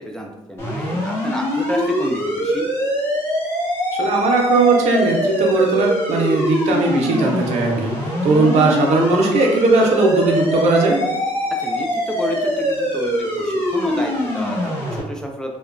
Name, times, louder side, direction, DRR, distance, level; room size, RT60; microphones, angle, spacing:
voice 1, 0.0-2.7 11.6-15.6, equal, 5° left, 1 dB, 0.3 m, -30 dB
sound 1, 0.6-15.0, left 1 dB, 20° left, 1.4 m, -23 dB
voice 2, 3.9-11.0, right 3 dB, 80° right, 1 dB, 0.5 m, -18 dB
2.7 x 2.2 x 2.5 m, 1.0 s
cardioid pair, 105°, 11 cm